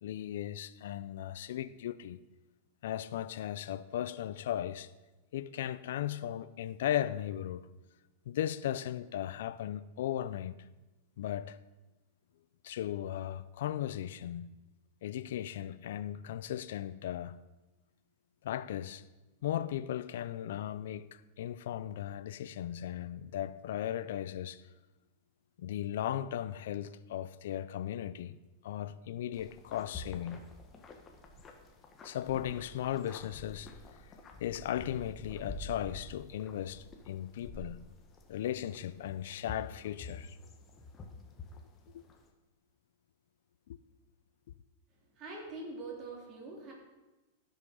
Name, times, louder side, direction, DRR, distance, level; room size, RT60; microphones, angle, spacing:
voice 1, 0.0-2.2 2.8-4.9 5.3-7.6 8.3-10.5 11.2-11.6 12.6-14.5 15.0-17.4 18.4-19.0 19.4-24.6 25.6-28.4 28.6-30.4 32.0-33.7 34.4-37.8 38.3-40.4 41.9-42.0 43.7-43.8, left 11 dB, 75° left, 0.5 m, -37 dB
sound 1, 29.3-42.3, left 2 dB, 25° left, 1.4 m, -48 dB
voice 2, 44.9-46.7, right 3 dB, 35° right, 3.9 m, -44 dB
15.0 x 6.4 x 5.5 m
hypercardioid pair, 130°, 0 cm